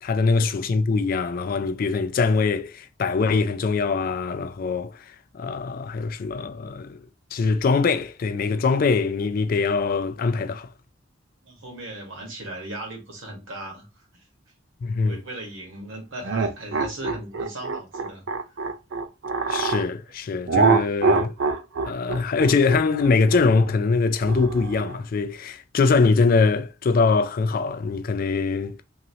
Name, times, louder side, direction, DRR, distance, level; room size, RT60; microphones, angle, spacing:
voice 1, 0.0-4.9 5.3-7.0 7.3-10.7 14.8-15.2 19.5-21.3 21.9-28.8, left 4 dB, 50° left, 0.3 m, -22 dB
voice 2, 11.4-14.2 15.0-18.3 18.5-18.7, right 1 dB, 90° right, 1.3 m, -38 dB
sound 1, 16.2-19.9 20.5-25.0, right 4 dB, 70° right, 0.5 m, -24 dB
3.0 x 2.7 x 2.7 m
head